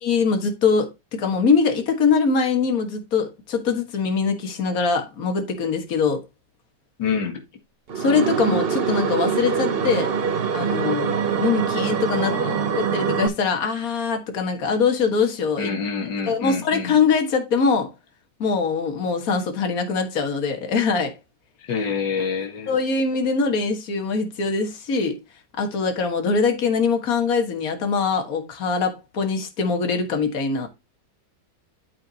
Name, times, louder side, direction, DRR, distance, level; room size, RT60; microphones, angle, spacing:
voice 1, 0.0-0.9 1.2-6.2 8.0-10.1 10.5-12.4 12.8-15.7 16.3-17.9 18.4-21.1 22.7-25.2 25.6-30.7, left 5 dB, 55° left, 2.0 m, -22 dB
voice 2, 7.0-7.4 12.2-13.0 15.6-17.0 21.6-22.8, left 5 dB, 85° left, 2.2 m, -27 dB
sound 1, 7.9-13.3, right 6 dB, 45° right, 0.9 m, -24 dB
12.0 x 4.6 x 2.8 m
omnidirectional pair, 1.9 m